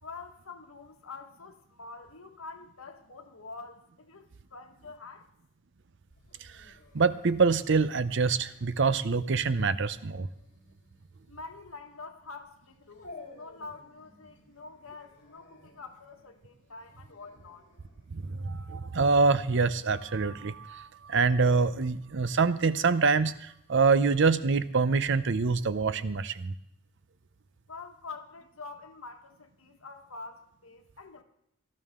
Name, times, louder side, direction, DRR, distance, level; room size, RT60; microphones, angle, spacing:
voice 1, 0.0-5.3 11.3-17.7 27.7-31.2, left 4 dB, 80° left, 1.5 m, -46 dB
Dog, 6.1-21.6, left 3 dB, 55° left, 3.3 m, -55 dB
voice 2, 6.9-10.3 18.1-26.5, right 4 dB, 60° right, 0.6 m, -25 dB
18.0 x 13.0 x 3.7 m
head